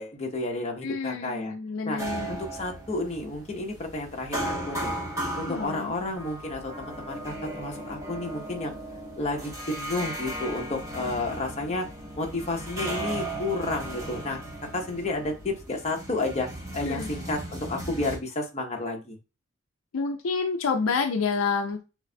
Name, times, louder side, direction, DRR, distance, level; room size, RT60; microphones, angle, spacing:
voice 1, 0.0-1.5 1.8-2.0 2.3-4.9 5.4-8.8 9.2-11.9 12.2-14.4 14.7-16.5 16.7-19.2, left 2 dB, 30° left, 1 dB, 0.9 m, -31 dB
voice 2, 0.8-2.4 5.5-5.9 16.8-17.1 19.9-21.8, left 5 dB, 65° left, 5 dB, 0.4 m, -28 dB
sound 1, 2.0-18.2, right 1 dB, 15° right, 1.0 m, -36 dB
6.5 x 2.5 x 2.2 m, 0.30 s
head